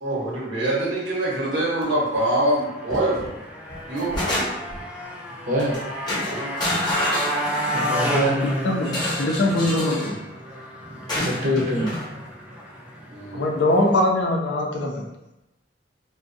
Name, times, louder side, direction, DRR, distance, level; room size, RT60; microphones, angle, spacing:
voice 1, 0.0-3.3 3.9-4.1 6.2-6.5 13.1-13.5, right 1 dB, 80° right, -5 dB, 0.9 m, -24 dB
Motorcycle, 1.8-14.0, equal, 5° right, 0.4 m, -32 dB
sound 1, 2.9-3.3 3.7-4.8 5.6-5.8 6.1-7.9 8.8-10.2 11.1-12.1, left 1 dB, 25° left, 0.8 m, -28 dB
voice 2, 5.5-5.8 7.7-8.5 11.2-12.0, equal, 45° right, -3 dB, 0.6 m, -24 dB
voice 3, 9.2-10.2 13.3-15.0, left 1 dB, 70° left, 1 dB, 0.5 m, -22 dB
2.5 x 2.1 x 2.5 m, 0.94 s
head